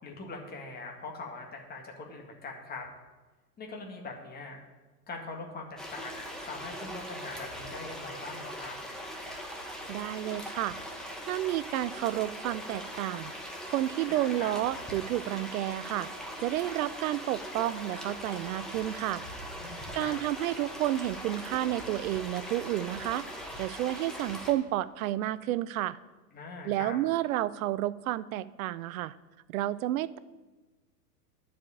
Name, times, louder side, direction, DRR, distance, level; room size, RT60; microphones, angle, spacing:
voice 1, 0.0-2.8 3.6-4.6 5.1-8.8 14.1-14.5 19.6-20.2 26.3-27.0, left 3 dB, 20° left, 1 dB, 1.9 m, -42 dB
sound 1, 5.8-24.5, equal, ahead, 1.4 m, -41 dB
voice 2, 9.9-10.8 11.3-13.3 13.7-16.1 16.4-19.3 19.9-23.2 23.6-26.0 26.6-29.1 29.5-30.2, right 14 dB, 60° right, 17 dB, 0.6 m, -31 dB
11.5 x 5.1 x 8.5 m, 1.2 s
hypercardioid pair, 125°, 48 cm